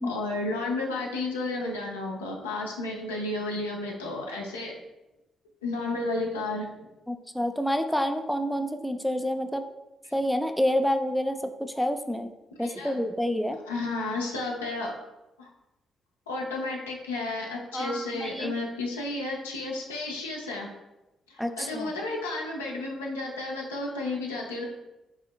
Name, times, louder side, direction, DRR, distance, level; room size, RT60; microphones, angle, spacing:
voice 1, 0.0-4.7 5.6-6.7 12.6-12.9 13.7-14.9 15.4-15.5 16.3-20.7 21.3-24.6, left 2 dB, 85° left, -2 dB, 0.5 m, -32 dB
voice 2, 7.1-9.6 10.1-12.3 12.6-13.6 17.7-18.5 21.4-21.9, equal, ahead, 6 dB, 0.4 m, -28 dB
4.8 x 2.8 x 2.2 m, 0.97 s
figure-of-eight pair, 40°, 0 cm